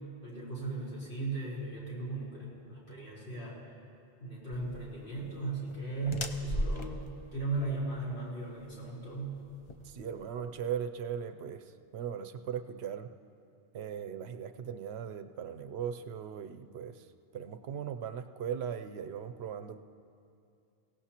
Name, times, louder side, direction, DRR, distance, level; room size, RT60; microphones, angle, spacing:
voice 1, 0.2-3.6 4.2-9.4, right 3 dB, 70° left, -8 dB, 4.2 m, -37 dB
sound 1, 4.5-10.6, left 1 dB, 35° left, 0.6 m, -39 dB
voice 2, 9.8-13.1 13.7-17.1 17.3-19.8, right 8 dB, 75° right, 8 dB, 0.8 m, -38 dB
22.0 x 17.0 x 2.9 m, 2.5 s
omnidirectional pair, 1.1 m